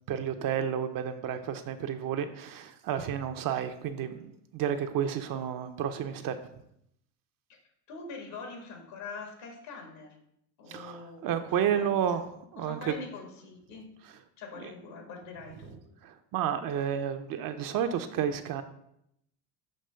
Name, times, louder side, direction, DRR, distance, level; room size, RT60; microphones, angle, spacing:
voice 1, 0.1-6.4 10.7-12.9 14.6-14.7 16.0-18.6, right 9 dB, 50° right, 8 dB, 0.7 m, -31 dB
voice 2, 7.9-10.2 10.6-12.2 12.6-13.9 14.4-15.8, left 4 dB, 70° left, 2 dB, 2.0 m, -44 dB
6.6 x 2.9 x 5.6 m, 0.76 s
supercardioid pair, 90°, 44 cm